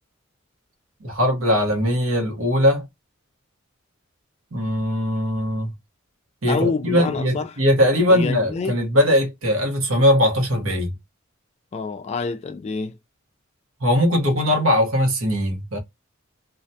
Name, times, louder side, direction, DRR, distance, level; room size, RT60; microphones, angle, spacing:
voice 1, 1.0-2.8 4.5-5.7 6.4-10.9 13.8-15.8, equal, 90° right, 1.0 m, -20 dB
voice 2, 6.5-7.5 8.1-8.8 11.7-13.0, left 4 dB, 30° left, 0.3 m, -27 dB
2.4 x 2.2 x 2.6 m
head